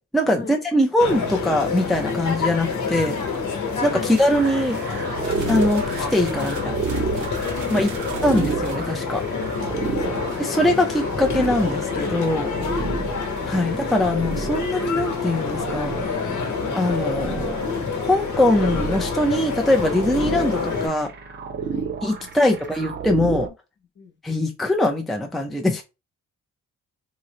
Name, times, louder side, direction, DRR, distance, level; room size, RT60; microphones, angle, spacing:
voice 1, 0.0-3.2 3.8-4.8 5.5-5.8 6.1-6.8 7.1-7.3 7.7-7.9 8.2-9.2 10.4-12.5 13.5-15.9 16.7-17.5 18.1-21.1 22.0-23.5 24.2-25.8, left 1 dB, ahead, 0.4 m, -22 dB
sound 1, 1.0-20.9, left 5 dB, 80° left, 1.1 m, -27 dB
sound 2, 4.0-4.4 5.2-8.7, right 5 dB, 85° right, 0.9 m, -41 dB
sound 3, 4.3-23.5, right 5 dB, 35° right, 0.7 m, -31 dB
voice 2, 6.6-8.2 9.3-10.1 12.8-13.1 21.6-21.9 22.2-22.3 23.4-23.5 24.0-24.1, left 7 dB, 40° left, 0.7 m, -39 dB
2.9 x 2.0 x 3.8 m
wide cardioid pair, 145°, 29 cm